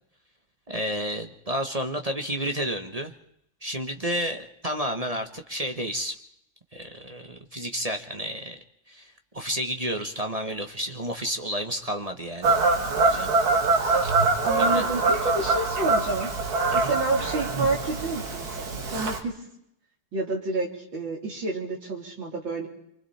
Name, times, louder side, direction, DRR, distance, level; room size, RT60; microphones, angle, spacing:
voice 1, 0.7-3.1 3.6-6.1 6.7-8.6 8.9-12.6 12.8-13.3 13.8-14.2 14.5-14.9 16.7-17.0, equal, 20° right, 5 dB, 1.1 m, -31 dB
Fowl / Bird vocalization bird call bird song, 12.4-19.2, right 3 dB, 45° right, 2.2 m, -24 dB
voice 2, 14.4-16.3 16.7-19.3 20.1-22.7, right 3 dB, 60° right, -1 dB, 4.5 m, -29 dB
28.5 x 24.5 x 4.3 m, 0.76 s
omnidirectional pair, 2.3 m